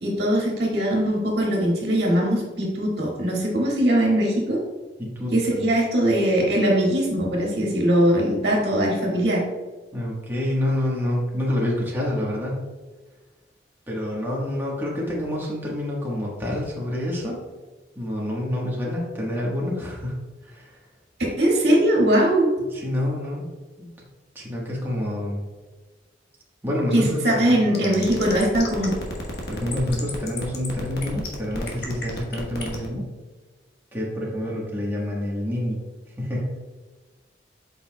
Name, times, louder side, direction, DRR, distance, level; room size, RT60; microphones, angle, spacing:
voice 1, 0.0-4.6 5.3-9.4 21.2-22.5 26.9-28.9, right 1 dB, 65° right, -3 dB, 1.9 m, -21 dB
voice 2, 5.0-5.3 9.9-12.7 13.9-17.4 17.9-20.8 22.7-23.5 23.8-24.0 24.3-25.5 26.6-28.1 29.5-33.1 33.9-35.8 36.2-36.6, left 1 dB, 10° right, -5 dB, 1.3 m, -28 dB
sound 1, 27.7-32.9, left 2 dB, 60° left, 1.2 m, -32 dB
7.8 x 5.5 x 2.3 m, 1.3 s
head